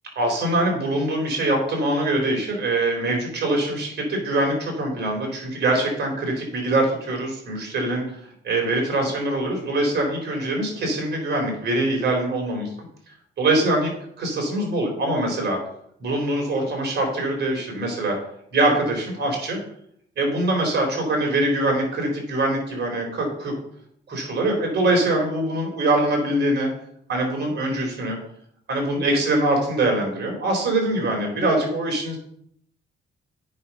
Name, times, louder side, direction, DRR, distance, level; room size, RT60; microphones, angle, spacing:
voice 1, 0.2-8.0 8.4-12.6 13.4-13.9 14.2-15.6 16.0-18.1 18.5-19.6 20.2-23.5 24.1-26.7 27.1-28.2 28.7-32.2, right 1 dB, 60° right, 1 dB, 4.3 m, -23 dB
8.7 x 5.9 x 5.6 m, 0.68 s
cardioid pair, 90°, 20 cm